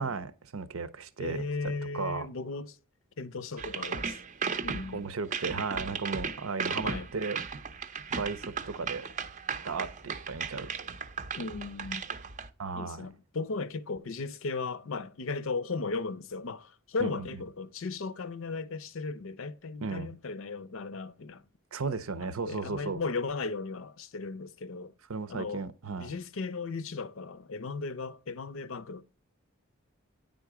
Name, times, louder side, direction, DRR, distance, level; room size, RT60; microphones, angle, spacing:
voice 1, 0.0-1.5 1.9-2.3 4.9-7.4 8.1-9.0 9.6-10.7 12.6-13.1 17.0-17.3 19.8-20.1 21.7-23.0 25.1-26.1, right 4 dB, 80° right, 0.7 m, -35 dB
voice 2, 1.2-2.8 3.2-4.2 4.6-5.1 6.8-7.1 11.4-12.0 12.7-21.5 22.2-24.9 25.3-25.6 26.0-29.0, left 4 dB, 65° left, 0.6 m, -36 dB
sound 1, 3.6-12.5, right 5 dB, 35° right, 0.5 m, -36 dB
9.3 x 3.8 x 4.8 m
head